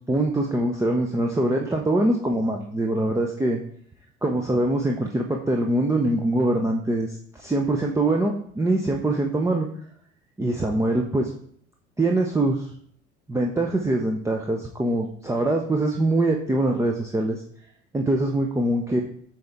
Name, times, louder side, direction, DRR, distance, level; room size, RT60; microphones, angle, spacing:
voice 1, 0.1-3.6 4.2-9.7 10.4-11.3 12.0-12.7 13.3-17.4 17.9-19.0, right 2 dB, 10° right, 0 dB, 0.6 m, -23 dB
7.6 x 4.3 x 3.5 m, 0.62 s
figure-of-eight pair, 60°, 37 cm